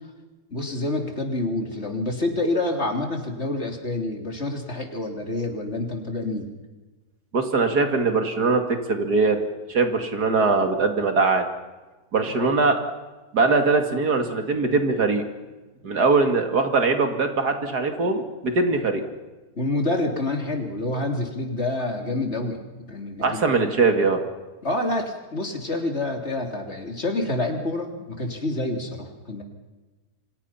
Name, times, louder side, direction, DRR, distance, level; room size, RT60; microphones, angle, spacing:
voice 1, 0.5-6.5 12.3-12.5 19.6-23.5 24.6-29.4, left 2 dB, 40° left, 3 dB, 3.5 m, -27 dB
voice 2, 7.3-9.4 9.7-11.5 12.1-12.8 13.3-15.2 15.8-19.1 23.2-24.2, right 3 dB, 80° right, 5 dB, 3.0 m, -21 dB
29.0 x 25.5 x 5.8 m, 1.2 s
omnidirectional pair, 1.7 m